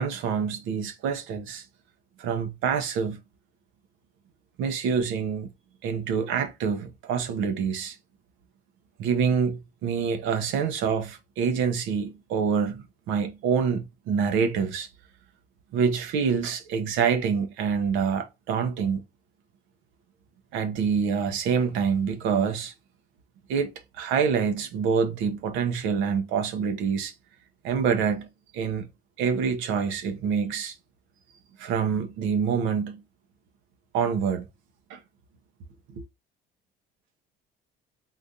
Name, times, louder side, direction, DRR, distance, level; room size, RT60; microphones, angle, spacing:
voice 1, 0.0-1.6 2.2-3.2 4.6-5.5 5.8-8.0 9.0-14.9 15.7-19.0 20.5-22.7 23.5-27.1 27.6-28.3 28.5-28.9 29.2-30.7 31.6-33.0 33.9-34.5 34.9-35.0 36.0-36.1, right 6 dB, 80° right, 0.7 m, -26 dB
3.8 x 2.5 x 2.7 m
supercardioid pair, 90°, 20 cm